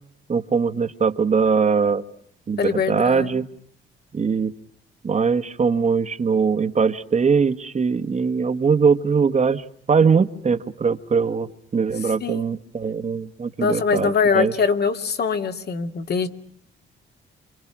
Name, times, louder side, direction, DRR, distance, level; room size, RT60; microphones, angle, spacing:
voice 1, 0.3-2.0 2.5-3.5 4.1-4.5 5.0-14.5, right 5 dB, 35° right, 8 dB, 1.5 m, -21 dB
voice 2, 2.6-3.4 12.2-12.5 13.6-16.3, left 5 dB, 55° left, 7 dB, 2.5 m, -23 dB
28.5 x 26.0 x 6.1 m, 0.68 s
cardioid pair, 90°, 20 cm